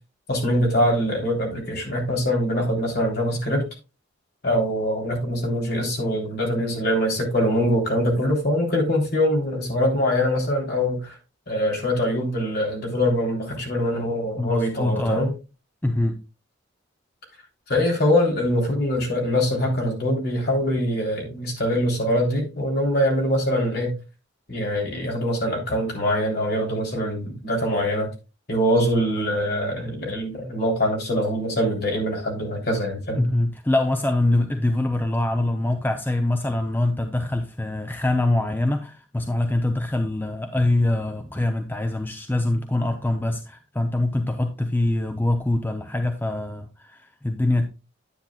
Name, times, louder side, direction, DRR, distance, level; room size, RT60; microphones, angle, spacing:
voice 1, 0.3-3.7 4.4-11.2 11.5-15.3 17.7-23.9 24.5-28.1 28.5-33.3, equal, 50° left, 3.4 m, -23 dB
voice 2, 14.4-15.2 15.8-16.2 33.2-47.6, left 2 dB, 10° left, 0.6 m, -24 dB
9.7 x 8.8 x 2.3 m
head